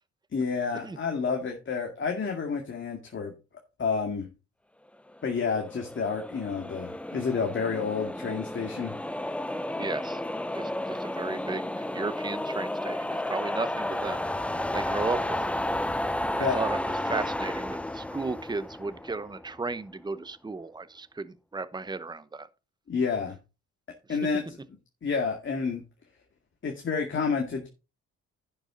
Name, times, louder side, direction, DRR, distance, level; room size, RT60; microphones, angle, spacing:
voice 1, 0.3-3.3 3.8-4.3 5.2-8.9 16.4-16.6 22.9-23.4 24.1-24.5 25.0-25.8 26.6-27.7, left 5 dB, 40° left, 2.2 m, -29 dB
sound 1, 5.2-19.6, left 1 dB, 5° left, 0.5 m, -32 dB
voice 2, 9.7-10.2 10.5-14.2 14.7-15.4 16.4-22.5 24.1-24.2, right 3 dB, 15° right, 0.9 m, -35 dB
10.5 x 6.7 x 3.9 m
cardioid pair, 90°, 30 cm